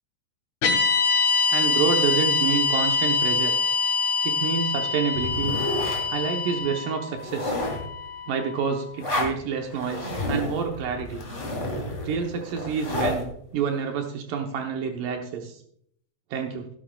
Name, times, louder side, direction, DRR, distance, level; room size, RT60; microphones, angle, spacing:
sound 1, 0.6-8.9, left 5 dB, 60° left, 4.0 m, -25 dB
voice 1, 1.5-3.5 4.2-5.6 6.1-7.6 8.3-11.2 12.0-13.3 13.5-15.6 16.3-16.7, right 6 dB, 85° right, 3 dB, 1.9 m, -28 dB
sound 2, 5.1-6.1 6.6-6.7 7.1-7.9 9.0-9.3 9.7-13.2, left 1 dB, 20° left, 1.7 m, -30 dB
17.5 x 11.5 x 2.3 m, 0.66 s
omnidirectional pair, 5.3 m